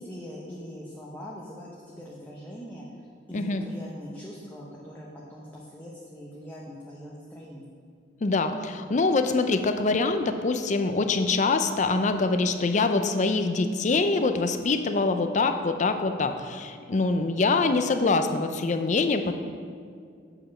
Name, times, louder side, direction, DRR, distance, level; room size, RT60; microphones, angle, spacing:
voice 1, 0.0-2.9 3.3-7.7, equal, 10° left, -4 dB, 0.8 m, -42 dB
voice 2, 8.2-19.3, left 3 dB, 40° left, 7 dB, 0.5 m, -24 dB
7.8 x 4.9 x 6.2 m, 2.2 s
head